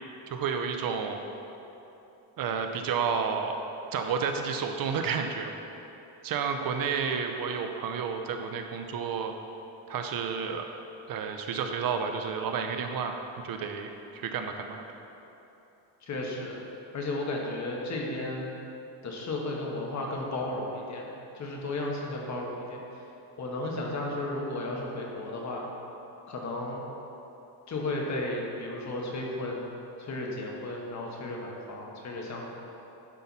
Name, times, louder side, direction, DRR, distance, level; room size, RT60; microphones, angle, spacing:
voice 1, 0.3-1.2 2.4-3.6 3.9-5.5 6.2-9.3 9.9-10.7 11.1-14.8, right 6 dB, 50° right, 5 dB, 0.6 m, -31 dB
voice 2, 16.0-16.6 16.9-18.5 19.0-21.1 21.3-23.0 23.4-25.7 26.3-26.8 27.7-29.7 30.0-32.4, left 2 dB, 40° left, -1 dB, 1.4 m, -34 dB
11.0 x 5.7 x 4.1 m, 3.0 s
cardioid pair, 140°, 44 cm